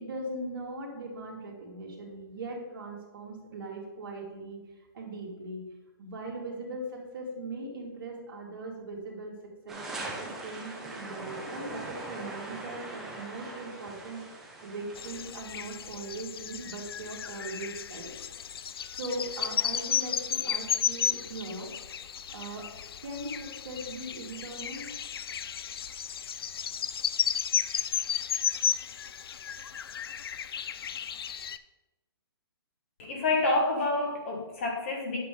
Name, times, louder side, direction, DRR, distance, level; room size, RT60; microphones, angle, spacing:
voice 1, 0.0-4.6 4.9-5.6 6.0-9.3 9.6-18.1 19.0-21.7 22.3-22.7 23.0-24.9, right 2 dB, 60° right, -1 dB, 2.1 m, -40 dB
sound 1, 9.7-15.4, right 2 dB, 5° right, 0.5 m, -41 dB
sound 2, 15.0-31.6, left 8 dB, 70° left, 0.4 m, -33 dB
voice 2, 33.0-35.2, left 2 dB, 30° left, 1 dB, 1.2 m, -28 dB
8.9 x 5.7 x 3.6 m, 1.1 s
hypercardioid pair, 175°, 13 cm